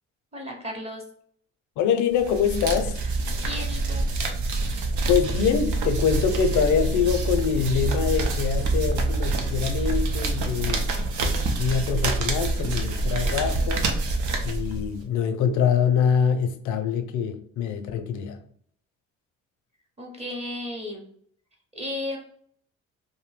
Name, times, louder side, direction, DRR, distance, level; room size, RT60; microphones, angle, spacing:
voice 1, 0.3-1.0 3.4-4.1 20.0-21.0 21.7-22.2, left 1 dB, 20° right, 0.8 m, -34 dB
voice 2, 1.8-3.0 5.1-10.9 11.5-13.9 14.4-18.4, left 7 dB, 80° left, 0.5 m, -24 dB
sound 1, 2.2-15.0, right 3 dB, 75° right, 0.6 m, -26 dB
2.6 x 2.1 x 3.1 m
cardioid pair, 90°, 30 cm